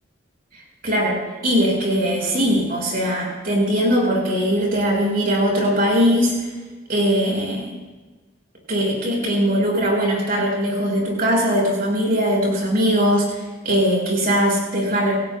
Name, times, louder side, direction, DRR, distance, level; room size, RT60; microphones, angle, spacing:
voice 1, 0.8-6.5 6.9-7.8 8.7-15.3, equal, 45° right, -2 dB, 6.2 m, -20 dB
28.5 x 16.5 x 2.4 m, 1.3 s
head